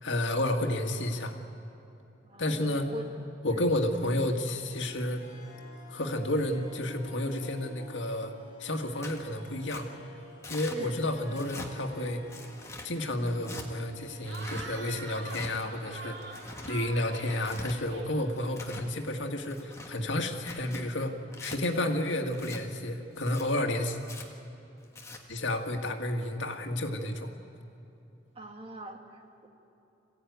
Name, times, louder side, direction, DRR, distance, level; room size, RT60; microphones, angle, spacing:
voice 1, 0.0-1.4 2.4-2.9 3.4-5.2 5.9-8.3 8.6-9.9 10.5-12.2 12.8-21.2 21.4-24.0 25.3-27.3, left 1 dB, 85° left, 4 dB, 1.9 m, -31 dB
voice 2, 2.2-3.1 3.5-3.7 10.7-10.9 28.4-29.5, equal, 30° right, 3 dB, 1.9 m, -43 dB
Harp, 3.7-20.5, equal, 40° left, 6.5 m, -52 dB
Tearing, 9.0-9.2 9.7-9.8 10.4-10.8 11.3-11.7 12.3-12.9 13.4-13.7 14.3-14.6 15.2-15.5 16.2-16.7 17.3-17.7 18.3-18.9 19.4-19.9 20.4-20.8 21.3-21.6 22.3-22.6 23.2-23.4 24.0-24.2 24.8-25.2, left 2 dB, 15° left, 1.5 m, -43 dB
Cheering / Crowd, 14.2-18.8, right 3 dB, 70° right, 2.0 m, -45 dB
25.5 x 16.0 x 9.4 m, 2.9 s
head